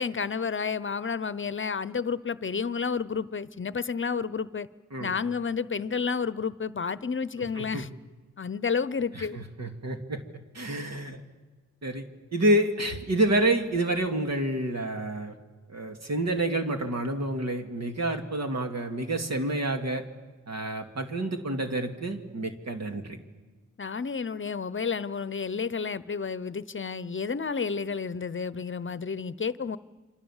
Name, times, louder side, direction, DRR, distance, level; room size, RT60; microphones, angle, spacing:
voice 1, 0.0-4.7 5.0-7.9 8.4-9.4 23.8-29.8, left 5 dB, 45° left, 16 dB, 0.8 m, -31 dB
voice 2, 7.4-7.9 9.1-11.2 11.8-12.0 12.3-15.3 15.7-20.0 20.5-23.2, right 1 dB, 65° right, 5 dB, 2.3 m, -28 dB
28.0 x 25.5 x 7.3 m, 1.3 s
cardioid pair, 70°, 29 cm